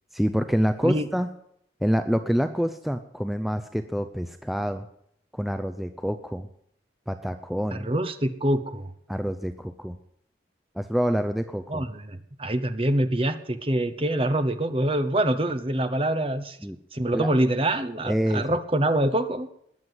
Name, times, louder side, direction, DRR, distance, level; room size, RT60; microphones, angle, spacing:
voice 1, 0.1-1.3 1.8-4.9 5.3-6.5 7.1-7.9 9.1-10.0 10.7-11.8 16.6-16.8 17.1-17.3 18.1-18.6, equal, ahead, 8 dB, 0.5 m, -27 dB
voice 2, 7.7-8.9 11.7-16.6 16.9-19.5, right 1 dB, 30° right, 9 dB, 1.0 m, -25 dB
20.0 x 7.5 x 8.0 m, 0.71 s
head